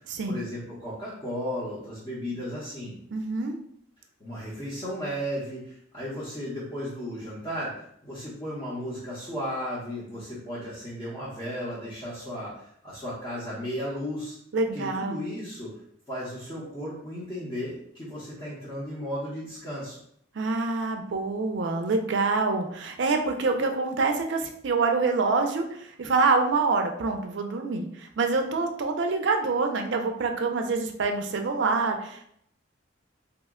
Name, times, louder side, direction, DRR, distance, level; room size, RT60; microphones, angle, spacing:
voice 1, 0.3-2.9 4.2-14.4 14.7-15.7 16.1-20.0, equal, 25° left, -10 dB, 0.8 m, -35 dB
voice 2, 3.1-3.6 14.5-15.2 20.3-32.2, right 3 dB, 60° right, 5 dB, 0.4 m, -26 dB
2.9 x 2.1 x 3.5 m, 0.69 s
head